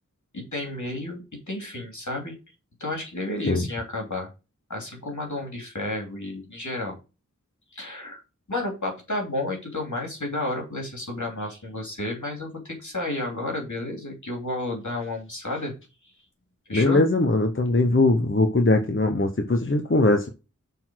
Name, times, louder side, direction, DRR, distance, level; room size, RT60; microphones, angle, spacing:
voice 1, 0.3-2.4 2.8-4.3 4.7-7.0 7.7-8.2 8.5-15.7 16.7-17.0, left 2 dB, 70° left, 1 dB, 2.9 m, -31 dB
voice 2, 16.7-20.3, left 2 dB, 40° left, 5 dB, 1.0 m, -21 dB
6.7 x 4.1 x 6.2 m, 0.29 s
wide cardioid pair, 45°, 30 cm